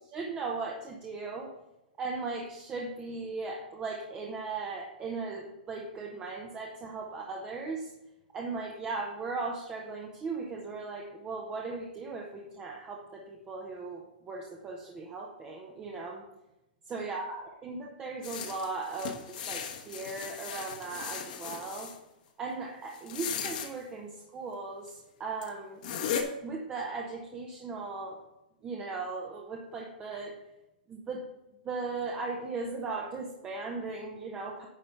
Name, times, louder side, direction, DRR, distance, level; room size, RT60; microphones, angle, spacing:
voice 1, 0.1-1.5 2.0-7.9 8.3-16.2 16.8-21.9 22.4-25.8 26.4-28.2 28.6-30.4 30.9-31.3 31.6-34.7, right 3 dB, 20° right, 0 dB, 0.8 m, -37 dB
sound 1, 18.2-22.0 22.9-23.7 24.9-25.0 25.4-25.5 25.8-26.2, left 8 dB, 55° left, 1.3 m, -37 dB
9.9 x 4.1 x 5.7 m, 0.94 s
hypercardioid pair, 145°, 5 cm